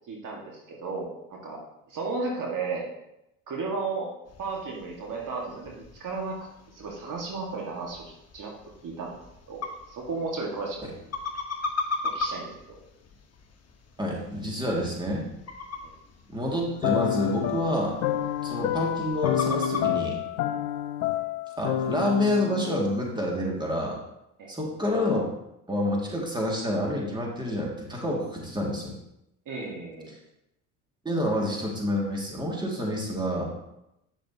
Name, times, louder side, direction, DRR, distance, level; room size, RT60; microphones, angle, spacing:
voice 1, 0.1-1.6 1.9-2.9 3.5-4.1 4.4-6.4 6.7-8.1 8.3-8.5 8.8-9.2 9.5-10.8 12.0-12.8 15.8-15.9 24.4-24.5 29.5-30.1, right 3 dB, 50° right, -2 dB, 1.9 m, -34 dB
sound 1, 4.2-19.9, left 3 dB, 35° left, 1.3 m, -39 dB
voice 2, 14.0-15.3 16.3-18.0 18.4-20.3 21.6-24.0 24.5-25.2 25.7-28.9 31.0-33.5, left 1 dB, 10° right, -2 dB, 2.3 m, -28 dB
sound 2, 16.8-23.2, left 10 dB, 90° left, 0.6 m, -29 dB
8.9 x 6.6 x 2.9 m, 0.85 s
hypercardioid pair, 65°, 42 cm